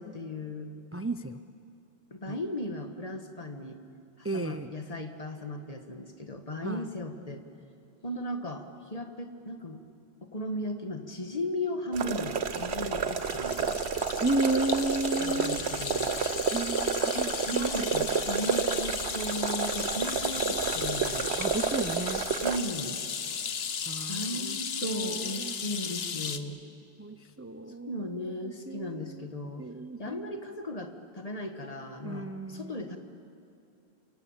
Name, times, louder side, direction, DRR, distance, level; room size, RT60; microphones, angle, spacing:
voice 1, 0.0-0.7 2.1-3.8 4.2-7.4 8.0-9.8 10.2-13.8 15.2-16.1 17.1-21.3 22.4-23.0 24.1-26.6 27.9-29.7 30.0-33.0, left 1 dB, 35° left, 5 dB, 1.7 m, -36 dB
voice 2, 0.9-1.4 2.3-2.4 4.2-4.7 6.6-6.9 14.2-15.6 16.5-17.7 18.0-18.1 21.4-22.2 23.9-25.5 27.0-28.0 28.4-29.2 29.6-30.2 32.0-32.8, right 2 dB, 15° right, 9 dB, 0.6 m, -33 dB
sound 1, 11.9-22.6, right 6 dB, 80° right, 1.3 m, -30 dB
sound 2, 12.2-26.4, left 6 dB, 70° left, 1.2 m, -36 dB
28.5 x 25.0 x 7.4 m, 2.6 s
omnidirectional pair, 1.1 m